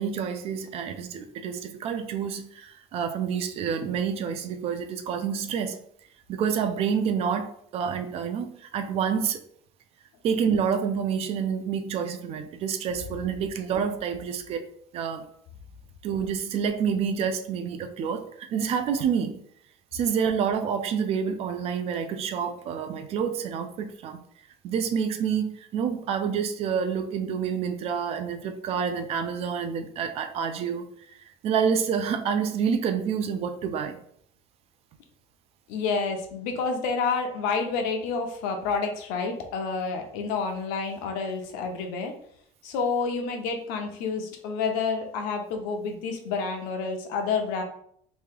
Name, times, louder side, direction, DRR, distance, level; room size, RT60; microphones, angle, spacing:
voice 1, 0.0-5.8 6.3-9.4 10.2-15.2 16.0-19.4 19.9-24.2 24.6-30.8 31.4-34.0, right 7 dB, 45° right, 8 dB, 0.4 m, -28 dB
voice 2, 35.7-42.1 42.6-47.6, left 4 dB, 80° left, 4 dB, 0.8 m, -29 dB
3.1 x 2.7 x 3.7 m, 0.66 s
cardioid pair, 160°, 15 cm